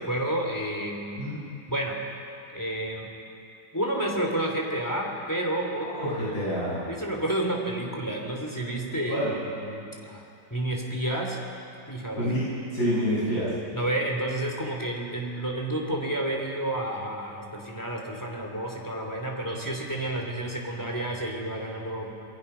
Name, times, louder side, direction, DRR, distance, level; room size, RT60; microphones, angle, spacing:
voice 1, 0.0-1.2 1.7-2.0 2.5-3.1 3.7-6.4 6.8-9.2 9.5-10.2 10.5-11.4 11.9-12.3 13.7-22.1, right 1 dB, 10° left, 0 dB, 3.2 m, -30 dB
voice 2, 5.8-6.8 9.1-9.3 12.2-12.4 12.7-13.5, equal, 60° left, -8 dB, 7.6 m, -27 dB
27.5 x 22.0 x 5.9 m, 2.7 s
omnidirectional pair, 2.0 m